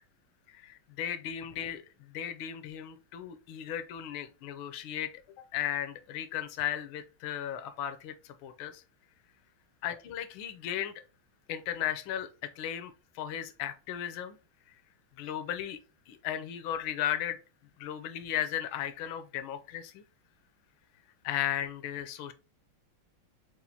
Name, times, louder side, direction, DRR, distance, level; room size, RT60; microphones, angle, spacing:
voice 1, 0.5-5.1 5.5-8.8 9.8-10.9 11.5-12.3 12.6-14.4 15.2-15.8 16.1-17.4 17.8-20.0 21.2-22.3, left 11 dB, 80° left, 1.4 m, -35 dB
5.6 x 2.4 x 2.6 m
omnidirectional pair, 2.3 m